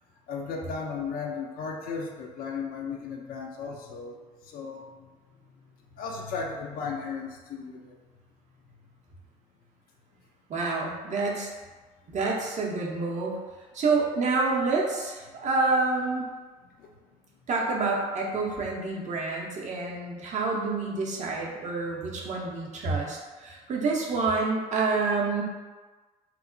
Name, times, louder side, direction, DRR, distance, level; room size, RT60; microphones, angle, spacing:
voice 1, 0.3-5.1 5.9-8.0 15.3-15.4 16.8-17.0, left 5 dB, 45° left, 1 dB, 0.4 m, -36 dB
voice 2, 10.5-11.5 12.1-13.4 13.7-16.3 17.5-25.4, right 3 dB, 35° right, -2 dB, 0.6 m, -28 dB
2.9 x 2.0 x 2.5 m, 1.3 s
figure-of-eight pair, 50°, 21 cm